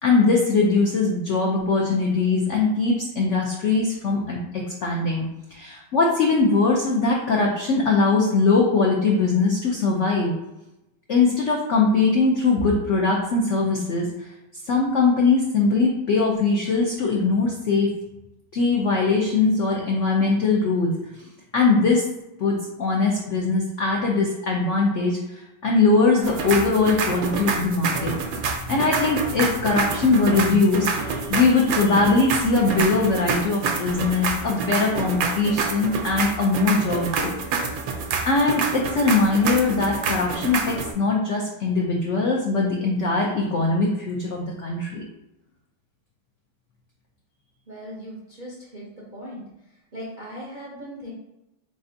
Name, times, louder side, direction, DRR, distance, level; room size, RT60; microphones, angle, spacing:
voice 1, 0.0-5.2 5.5-10.3 11.1-14.3 14.7-17.9 18.5-20.9 21.2-21.3 21.5-22.0 22.4-37.3 38.3-45.0, left 3 dB, 90° left, -1 dB, 0.6 m, -21 dB
sound 1, 26.2-40.9, right 5 dB, 85° right, 1.4 m, -27 dB
voice 2, 47.7-49.5 49.9-51.1, equal, 65° right, -5 dB, 0.4 m, -38 dB
4.2 x 3.7 x 2.6 m, 0.91 s
omnidirectional pair, 2.0 m